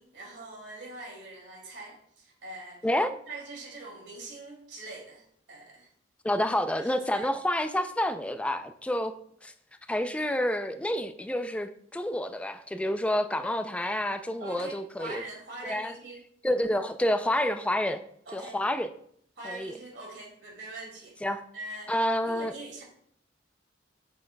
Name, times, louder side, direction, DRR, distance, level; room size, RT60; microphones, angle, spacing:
voice 1, 0.0-2.9 3.3-5.2 5.5-5.9 6.8-7.3 14.4-16.2 18.3-18.6 19.4-21.2 21.5-21.9 22.2-22.8, right 2 dB, 65° right, -1 dB, 2.4 m, -43 dB
voice 2, 6.2-9.1 9.4-9.5 9.9-15.2 15.6-15.9 16.4-18.0 18.3-18.9 19.4-19.7 21.2-21.4 21.9-22.5, left 1 dB, 5° left, 8 dB, 0.4 m, -28 dB
8.3 x 6.4 x 2.3 m, 0.65 s
head